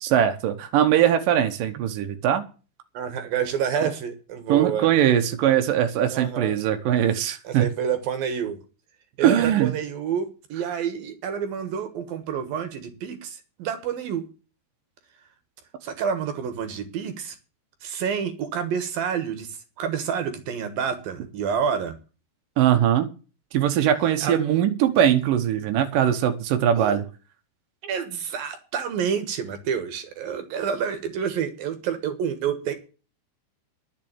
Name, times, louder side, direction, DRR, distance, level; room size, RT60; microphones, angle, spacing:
voice 1, 0.0-2.4 4.5-7.7 9.2-9.7 22.6-23.1 23.5-27.0, right 10 dB, 85° right, 6 dB, 1.9 m, -21 dB
voice 2, 2.9-4.9 5.4-5.5 6.1-6.6 7.4-8.6 9.2-14.2 15.8-17.4 17.8-22.0 24.2-24.6 26.8-27.0 27.8-32.7, right 7 dB, 65° right, 8 dB, 2.5 m, -28 dB
11.0 x 7.5 x 8.8 m, 0.35 s
omnidirectional pair, 5.6 m